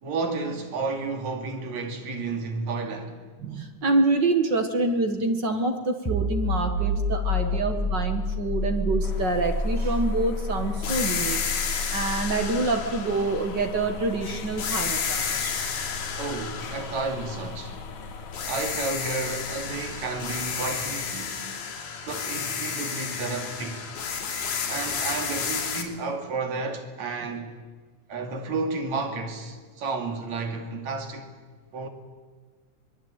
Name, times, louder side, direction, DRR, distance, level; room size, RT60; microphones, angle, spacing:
voice 1, 0.0-3.2 15.2-15.5 16.2-17.8 18.4-21.5 22.1-23.9 24.7-27.6 28.1-31.3 31.7-31.9, right 3 dB, 65° right, 3.8 m, -32 dB
voice 2, 3.4-15.5, right 2 dB, 45° right, 1.8 m, -26 dB
sound 1, 6.0-17.5, left 1 dB, 10° left, 1.1 m, -30 dB
sound 2, 9.0-21.1, left 4 dB, 70° left, 3.1 m, -41 dB
sound 3, 10.8-14.1 14.6-17.9 18.3-25.8, left 6 dB, 85° left, 4.5 m, -32 dB
23.0 x 23.0 x 9.0 m
omnidirectional pair, 3.5 m